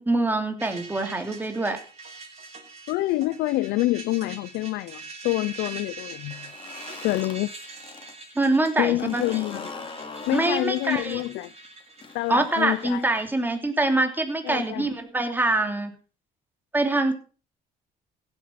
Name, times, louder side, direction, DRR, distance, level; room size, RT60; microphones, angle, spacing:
voice 1, 0.0-1.8 8.3-9.2 10.3-11.2 12.3-15.9 16.7-17.1, right 2 dB, 10° right, 3.0 m, -24 dB
sound 1, 0.6-15.0, right 3 dB, 40° right, 6.9 m, -43 dB
voice 2, 2.9-6.5 7.0-7.5 8.8-9.7 10.3-11.5 12.1-13.0 14.4-14.9, left 18 dB, 90° left, 0.5 m, -27 dB
sound 2, 6.2-8.1 8.4-13.2, left 4 dB, 30° left, 2.8 m, -41 dB
16.0 x 8.3 x 5.9 m
cardioid pair, 110°, 17 cm